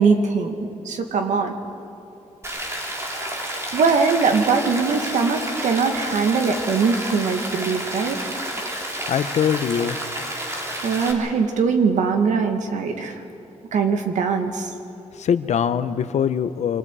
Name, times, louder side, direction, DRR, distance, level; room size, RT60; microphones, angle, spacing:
voice 1, 0.0-1.5 3.7-8.2 10.8-13.2 13.7-14.7, right 5 dB, 85° right, 5 dB, 2.1 m, -21 dB
Rain, 2.4-11.1, right 1 dB, 20° right, 3.1 m, -30 dB
voice 2, 9.1-10.0 15.2-16.8, left 8 dB, 70° left, 12 dB, 0.9 m, -22 dB
27.0 x 25.5 x 4.9 m, 3.0 s
wide cardioid pair, 150°, 12 cm